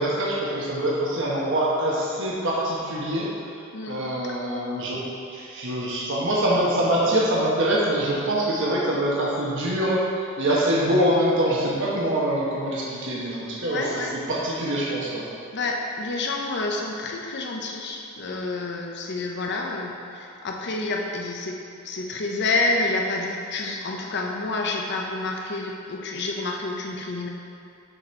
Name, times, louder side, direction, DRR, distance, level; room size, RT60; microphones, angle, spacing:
voice 1, 0.0-3.3 3.9-5.0 5.3-10.0 10.4-13.9 14.3-15.3, right 1 dB, 65° right, -5 dB, 1.2 m, -24 dB
voice 2, 13.6-14.2 15.5-21.6 21.8-27.3, left 2 dB, 55° left, 1 dB, 0.7 m, -28 dB
6.7 x 4.4 x 4.4 m, 2.5 s
head